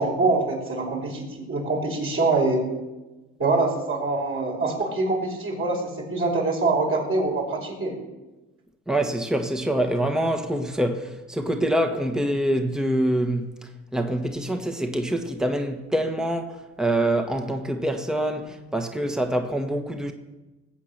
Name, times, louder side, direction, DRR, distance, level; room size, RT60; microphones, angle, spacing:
voice 1, 0.0-2.6 3.4-8.0, right 3 dB, 45° right, 5.4 m, -24 dB
voice 2, 8.9-13.5 13.9-20.1, right 1 dB, ahead, 1.4 m, -25 dB
19.0 x 8.4 x 6.7 m
cardioid pair, 90°, 30 cm